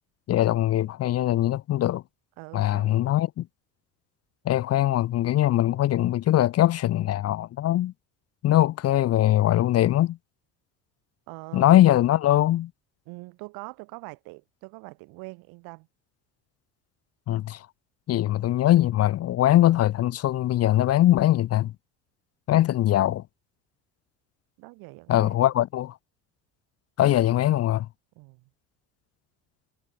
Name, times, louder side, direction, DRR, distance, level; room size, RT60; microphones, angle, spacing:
voice 1, 0.3-2.0 2.5-3.5 4.4-7.9 8.4-10.2 11.5-12.7 17.3-17.7 18.1-21.7 22.5-23.2 25.1-25.9 27.0-27.9, left 13 dB, 45° left, 0.7 m, -21 dB
voice 2, 2.4-3.1 11.3-11.7 13.0-15.9 24.6-25.5 28.1-28.5, right 27 dB, 80° right, 5.2 m, -43 dB
supercardioid pair, 100°, 36 cm